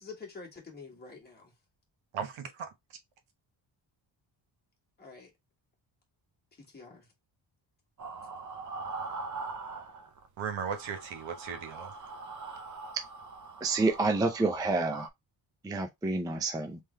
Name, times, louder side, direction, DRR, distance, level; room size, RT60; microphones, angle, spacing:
voice 1, 0.0-1.5 5.0-5.3 6.6-7.1, left 4 dB, 20° left, 1.7 m, -47 dB
voice 2, 2.1-2.7 10.4-11.9, right 7 dB, 85° right, 1.1 m, -36 dB
sound 1, 8.0-10.3 10.5-15.1, right 3 dB, 40° right, 0.7 m, -42 dB
voice 3, 13.6-15.1 15.6-16.8, right 3 dB, 10° right, 0.4 m, -28 dB
3.7 x 3.3 x 3.2 m
wide cardioid pair, 155°, 46 cm